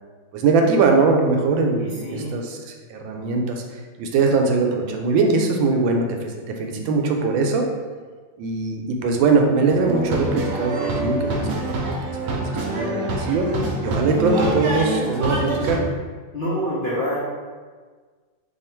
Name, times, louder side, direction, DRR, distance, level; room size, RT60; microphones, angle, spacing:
voice 1, 0.3-2.6 2.9-3.6 4.0-6.2 6.5-7.7 8.4-11.9 12.2-13.5 13.8-15.8, right 4 dB, 90° right, 2 dB, 1.3 m, -21 dB
voice 2, 1.8-2.4 16.3-17.2, equal, 80° left, -9 dB, 0.4 m, -26 dB
sound 1, 9.7-15.8, right 1 dB, 75° right, 0.8 m, -25 dB
3.1 x 2.4 x 4.3 m, 1.5 s
omnidirectional pair, 2.0 m